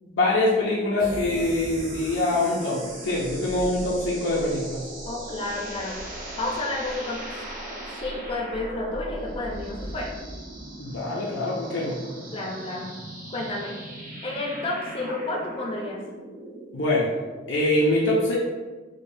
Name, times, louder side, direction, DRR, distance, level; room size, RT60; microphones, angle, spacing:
voice 1, 0.0-4.8 10.8-12.0 16.7-17.1 17.5-18.4, left 2 dB, 75° left, -5 dB, 0.6 m, -24 dB
sound 1, 1.0-17.8, right 1 dB, 45° right, 1.1 m, -39 dB
voice 2, 5.0-6.0 6.4-7.2 7.9-10.1 12.3-12.9 13.3-13.7 14.2-16.0, left 2 dB, 30° left, -1 dB, 0.5 m, -31 dB
4.9 x 2.2 x 2.6 m, 1.4 s
head